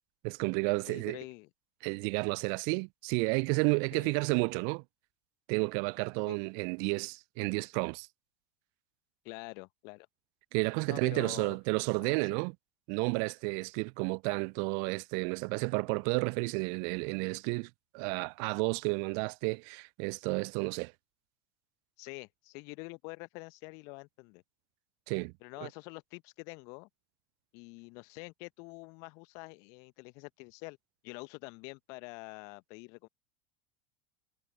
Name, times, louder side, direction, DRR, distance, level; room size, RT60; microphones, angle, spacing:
voice 1, 0.2-1.2 1.8-4.8 5.5-8.1 10.5-12.5 12.9-20.9 25.1-25.3, right 40 dB or more, 50° right, 0.4 m, -31 dB
voice 2, 0.9-1.5 3.9-4.1 6.3-6.4 9.2-10.1 10.9-11.6 12.0-12.4 22.0-24.4 25.4-26.9 27.5-30.8 31.0-33.1, left 29 dB, 50° left, 1.1 m, -46 dB
figure-of-eight pair, 80°, 7 cm